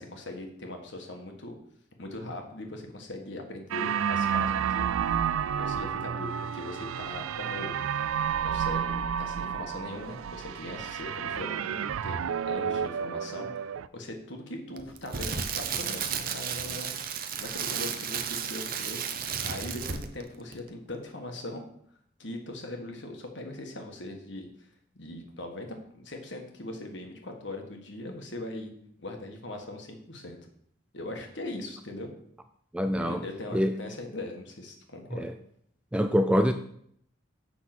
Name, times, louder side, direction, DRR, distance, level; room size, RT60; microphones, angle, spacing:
voice 1, 0.0-1.5 2.0-4.9 5.6-7.7 8.4-13.6 13.9-21.6 22.2-24.7 24.9-28.7 29.0-30.4 30.9-32.1 33.0-35.3, left 1 dB, 60° left, 3 dB, 1.6 m, -40 dB
sound 1, 3.7-13.9, right 8 dB, 85° right, 0.4 m, -30 dB
Crackle, 14.8-20.2 20.5-20.7, right 7 dB, 45° right, 0.7 m, -33 dB
voice 2, 32.7-33.2 33.5-33.7 35.2-35.3 35.9-36.5, equal, 5° right, 8 dB, 0.3 m, -24 dB
7.5 x 6.1 x 6.0 m, 0.68 s
head